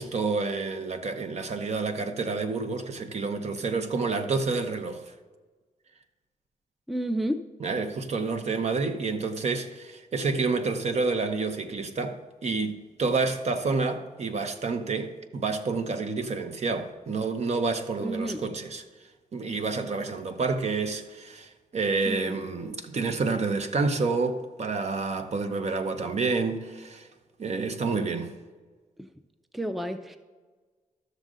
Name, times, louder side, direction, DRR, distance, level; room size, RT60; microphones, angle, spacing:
voice 1, 0.0-5.0 7.6-18.8 19.3-27.1 27.4-28.3, right 4 dB, 55° right, 0.9 m, -29 dB
voice 2, 6.9-7.5 18.0-18.4 22.1-22.4 29.0-29.1 29.5-30.2, right 1 dB, ahead, 0.5 m, -31 dB
13.5 x 6.5 x 3.8 m
cardioid pair, 95°, 14 cm